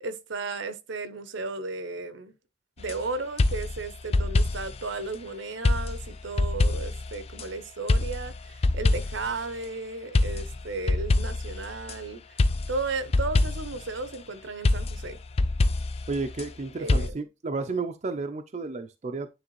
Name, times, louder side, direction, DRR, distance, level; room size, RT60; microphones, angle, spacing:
voice 1, 0.0-2.3 2.8-12.2 12.7-15.2 16.8-17.2, right 3 dB, 75° right, 0.7 m, -34 dB
sound 1, 2.8-3.0 3.4-4.8 5.6-7.5 7.9-9.4 10.1-12.0 12.4-13.9 14.6-16.5 16.9-17.1, left 2 dB, 30° left, 0.4 m, -25 dB
voice 2, 16.1-19.3, right 3 dB, 35° right, 0.4 m, -32 dB
9.5 x 3.3 x 3.0 m
head